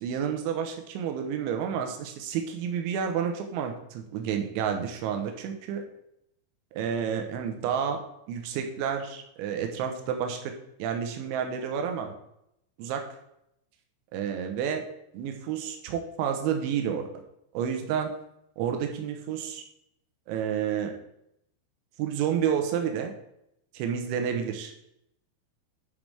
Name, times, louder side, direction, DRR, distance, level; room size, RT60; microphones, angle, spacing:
voice 1, 0.0-5.8 6.7-8.0 8.3-10.5 10.8-12.1 12.8-13.0 14.1-14.8 15.1-17.1 17.5-18.1 18.6-19.6 20.3-20.9 22.0-23.1 23.7-24.7, right 8 dB, 75° right, 4 dB, 3.2 m, -30 dB
10.5 x 5.8 x 3.4 m, 0.78 s
omnidirectional pair, 5.9 m